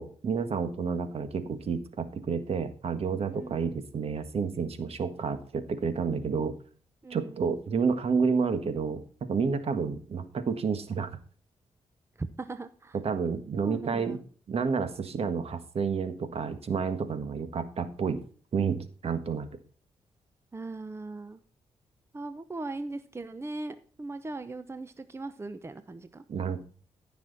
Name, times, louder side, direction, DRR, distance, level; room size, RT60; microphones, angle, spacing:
voice 1, 0.0-6.5 7.1-9.0 9.3-11.1 13.0-14.2 14.5-18.2 18.5-19.5 26.3-26.6, right 5 dB, 60° right, 10 dB, 1.6 m, -30 dB
voice 2, 3.3-3.6 7.0-7.4 12.2-13.0 13.6-14.2 20.5-21.4 22.1-26.6, right 2 dB, 25° right, 11 dB, 0.8 m, -39 dB
15.0 x 6.1 x 4.0 m, 0.42 s
cardioid pair, 80°, 11 cm